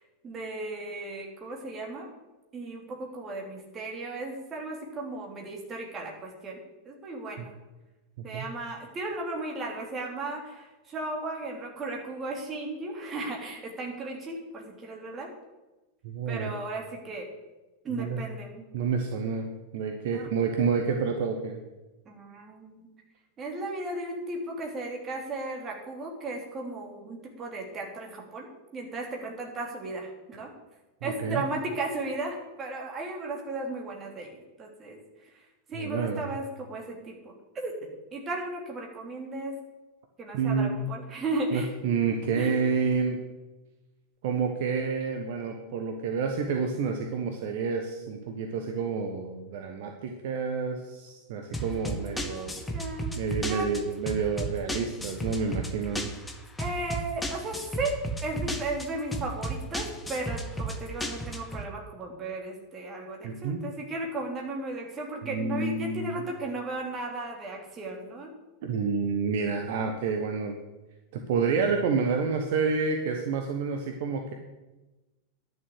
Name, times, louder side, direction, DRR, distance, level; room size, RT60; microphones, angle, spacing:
voice 1, 0.2-2.1 2.5-6.5 6.8-7.5 8.2-15.3 16.3-17.3 17.8-18.7 20.1-20.3 22.0-22.9 23.4-28.5 28.7-30.5 31.0-34.3 34.6-35.0 35.7-37.7 38.1-39.5 40.2-41.7 42.4-42.6 52.0-53.2 53.5-53.7 56.6-57.9 58.2-68.3, right 2 dB, 25° right, 0 dB, 3.2 m, -35 dB
voice 2, 16.0-16.5 17.9-18.2 18.7-19.5 19.7-21.6 31.0-31.4 35.7-36.4 40.3-40.9 41.5-43.2 44.2-52.6 53.2-56.1 63.2-63.6 65.2-66.2 68.6-70.5 71.1-74.3, right 5 dB, 50° right, 4 dB, 1.2 m, -29 dB
sound 1, 51.5-61.6, right 1 dB, 10° left, 1.4 m, -34 dB
11.0 x 6.9 x 8.1 m, 1.1 s
figure-of-eight pair, 90°, 0 cm